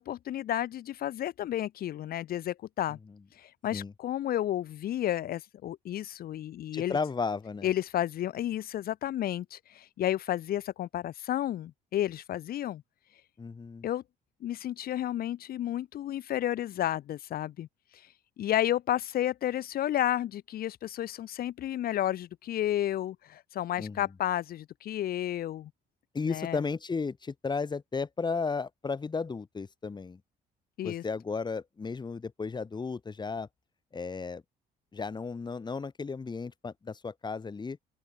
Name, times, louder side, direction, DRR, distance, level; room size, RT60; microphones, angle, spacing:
voice 1, 0.0-3.0 3.3-7.0 7.6-12.8 13.8-14.0 14.4-18.1 18.4-25.7 26.2-26.6 30.8-31.0, left 12 dB, 60° left, 2.5 m, -32 dB
voice 2, 6.7-7.7 13.4-13.9 23.8-24.0 26.1-30.2 30.8-33.5 33.9-34.4 34.9-37.8, left 4 dB, 25° left, 6.3 m, -34 dB
open air
cardioid pair, 110°, 17 cm